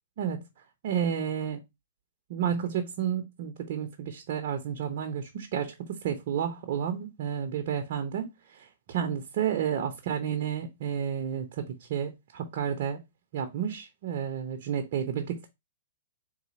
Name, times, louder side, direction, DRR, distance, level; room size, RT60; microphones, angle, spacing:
voice 1, 0.8-1.6 2.3-5.7 6.0-8.3 8.5-13.0 13.3-15.5, right 8 dB, 55° right, 0.7 m, -31 dB
4.0 x 2.7 x 3.9 m
hypercardioid pair, 120°, 0 cm